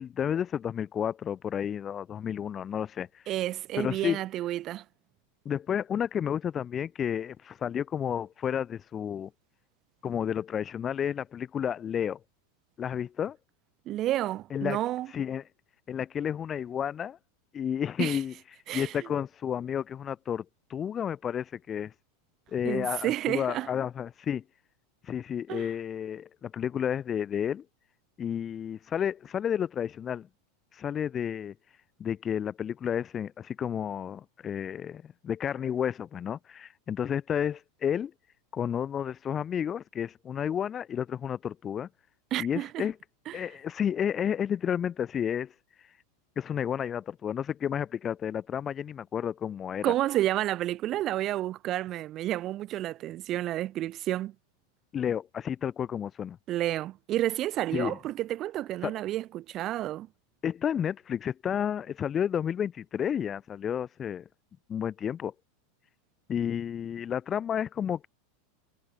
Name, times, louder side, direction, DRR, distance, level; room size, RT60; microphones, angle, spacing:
voice 1, 0.0-3.2 3.8-4.2 5.4-9.3 10.0-12.2 12.8-13.4 14.5-14.8 15.1-15.4 15.9-17.2 17.5-18.3 18.7-20.4 20.7-21.9 22.5-24.4 25.0-27.6 28.2-30.3 30.7-31.5 32.0-38.1 38.5-41.9 42.4-42.9 43.3-45.5 46.4-49.9 54.9-56.4 57.7-58.0 58.8-59.0 60.4-64.2 64.7-65.3 66.3-68.1, left 8 dB, 25° left, 3.1 m, -31 dB
voice 2, 3.3-4.8 13.9-15.1 18.0-18.2 18.7-18.9 22.6-23.7 25.5-25.7 42.3-42.9 43.3-43.4 49.8-54.3 56.5-60.1, right 14 dB, 35° right, 4.1 m, -30 dB
supercardioid pair, 135°, 0 cm